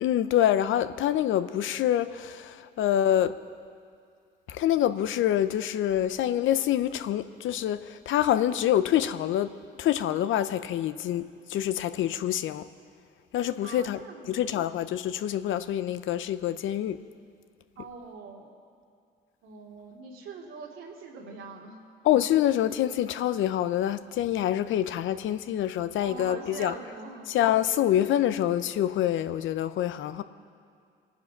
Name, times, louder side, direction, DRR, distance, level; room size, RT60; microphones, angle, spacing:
voice 1, 0.0-3.3 4.5-9.5 9.8-12.7 13.3-14.0 14.3-17.0 22.0-26.7 27.3-30.2, left 11 dB, 75° left, 13 dB, 0.7 m, -26 dB
voice 2, 13.6-14.4 17.8-18.5 19.4-21.8 26.0-27.3, right 4 dB, 85° right, -1 dB, 2.5 m, -43 dB
24.5 x 9.6 x 6.0 m, 2.3 s
cardioid pair, 90°, 20 cm